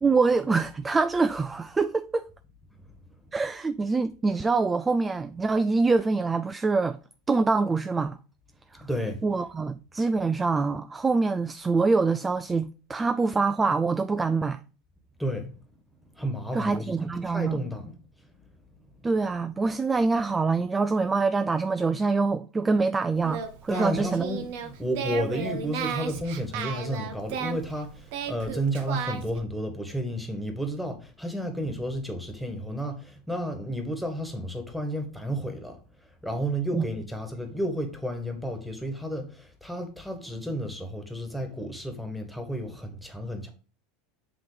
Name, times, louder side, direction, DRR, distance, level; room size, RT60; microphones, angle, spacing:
voice 1, 0.0-2.3 3.3-7.0 7.3-8.2 9.2-14.6 16.5-17.6 19.0-24.2 36.7-36.8, right 4 dB, 20° right, 0.3 m, -25 dB
voice 2, 8.8-9.2 15.2-15.5 16.1-17.9 23.7-35.8 36.2-43.5, equal, ahead, 1.7 m, -32 dB
Singing, 23.1-29.4, right 7 dB, 65° right, 1.0 m, -35 dB
7.5 x 3.0 x 5.1 m
hypercardioid pair, 95°, 0 cm